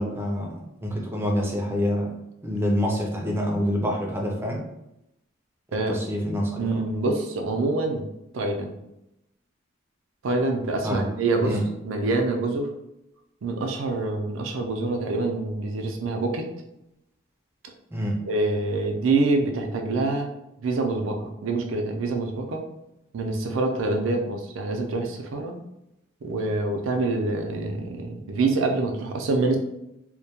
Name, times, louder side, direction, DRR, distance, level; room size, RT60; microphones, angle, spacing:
voice 1, 0.0-2.1 2.4-4.6 5.9-6.8 10.8-11.1 11.4-11.6 17.9-18.2, equal, 10° right, 0 dB, 0.4 m, -26 dB
voice 2, 6.6-8.1 8.3-8.8 10.2-11.6 11.8-12.7 13.4-16.5 18.3-20.3 20.6-22.6 23.1-25.6 26.2-29.6, right 3 dB, 75° right, 3 dB, 0.4 m, -26 dB
2.2 x 2.1 x 2.8 m, 0.86 s
head